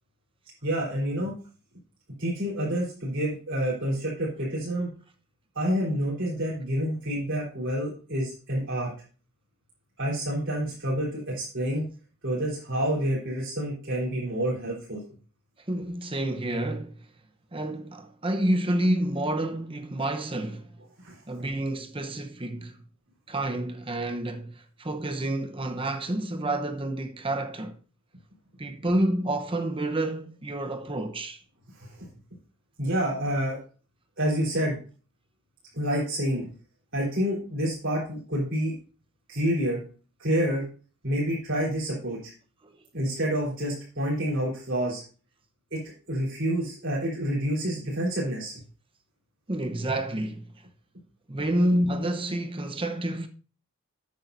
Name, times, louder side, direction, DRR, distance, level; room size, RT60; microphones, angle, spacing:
voice 1, 0.6-1.3 2.2-4.9 5.5-8.9 10.0-11.9 12.2-15.0 21.0-21.2 31.8-32.1 32.8-33.6 34.2-34.8 35.7-36.5 36.9-38.7 39.3-39.8 40.2-40.6 41.0-42.3 42.9-45.0 45.7-45.8 46.1-48.6, equal, 55° right, 4.0 m, -28 dB
voice 2, 15.7-17.1 17.5-20.8 21.3-22.8 23.3-27.8 28.6-31.4 49.5-50.5 51.3-53.3, right 1 dB, 25° right, 0.9 m, -29 dB
12.0 x 8.6 x 2.7 m
head